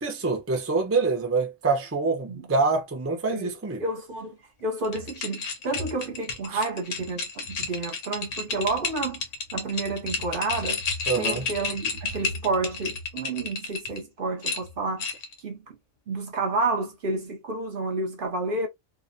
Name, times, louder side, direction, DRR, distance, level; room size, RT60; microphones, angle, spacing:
voice 1, 0.0-3.8 6.5-6.6 11.1-11.4, right 4 dB, 20° right, 0.3 m, -25 dB
voice 2, 3.3-4.4 4.6-9.2 9.5-10.8 11.2-15.1 15.4-15.8 16.1-18.7, right 3 dB, 55° right, 0.8 m, -30 dB
sound 1, 4.8-14.0 14.4-15.4, left 4 dB, 85° left, 1.1 m, -32 dB
2.8 x 2.1 x 2.5 m
omnidirectional pair, 1.3 m